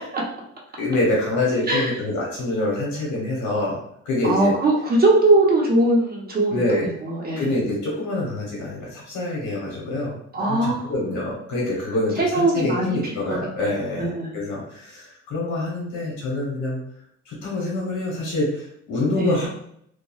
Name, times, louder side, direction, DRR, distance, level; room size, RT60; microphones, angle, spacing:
voice 1, 0.8-3.8 4.0-4.5 6.5-6.9 7.4-16.8 17.3-19.5, left 2 dB, 75° left, -4 dB, 1.0 m, -26 dB
voice 2, 4.2-7.5 10.3-10.9 12.2-13.0 13.3-13.4 14.0-14.3 19.2-19.4, right 2 dB, 30° right, -3 dB, 0.9 m, -20 dB
3.0 x 2.3 x 2.3 m, 0.70 s
cardioid pair, 90°, 30 cm